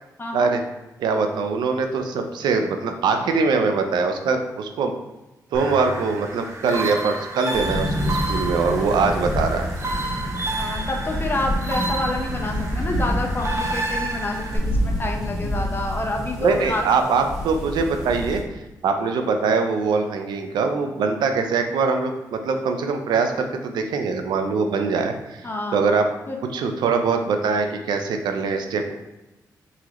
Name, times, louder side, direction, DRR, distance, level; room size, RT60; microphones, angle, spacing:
voice 1, 0.2-0.5 10.6-16.8 25.4-25.9 26.3-26.4, left 2 dB, 30° left, 1 dB, 0.7 m, -28 dB
voice 2, 1.0-4.9 5.5-9.7 16.4-18.4 18.8-26.1 26.5-28.9, right 4 dB, 90° right, 5 dB, 0.5 m, -23 dB
sound 1, 5.5-14.6, right 2 dB, 40° right, 0.7 m, -31 dB
sound 2, 7.5-18.4, equal, 5° right, 1.4 m, -28 dB
3.9 x 2.8 x 3.0 m, 1.0 s
cardioid pair, 70°, 7 cm